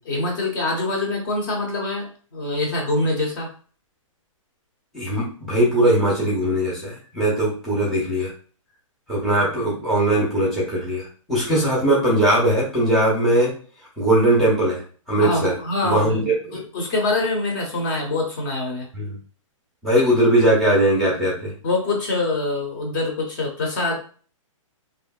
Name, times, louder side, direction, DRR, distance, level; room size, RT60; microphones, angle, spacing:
voice 1, 0.0-3.5 15.2-18.9 21.6-24.0, left 2 dB, 40° left, 0 dB, 0.9 m, -25 dB
voice 2, 4.9-8.3 9.1-13.5 14.0-14.8 15.1-15.5 15.8-16.6 18.9-19.1 19.8-21.5, right 1 dB, ahead, -7 dB, 0.7 m, -20 dB
3.0 x 2.8 x 2.2 m, 0.42 s
hypercardioid pair, 165°, 17 cm